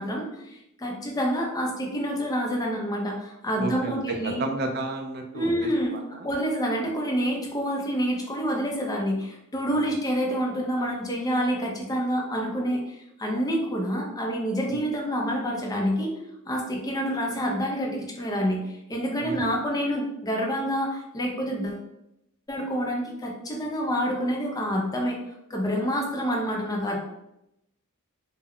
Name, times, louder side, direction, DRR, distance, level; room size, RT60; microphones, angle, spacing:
voice 1, 0.0-4.4 5.3-5.9 6.2-16.1 16.5-21.8 22.5-25.2 25.5-27.0, equal, 15° left, -1 dB, 0.5 m, -27 dB
voice 2, 3.6-6.3 9.7-10.0 14.7-14.8 19.2-19.5, right 3 dB, 45° right, 3 dB, 0.4 m, -32 dB
2.2 x 2.1 x 3.5 m, 0.84 s
head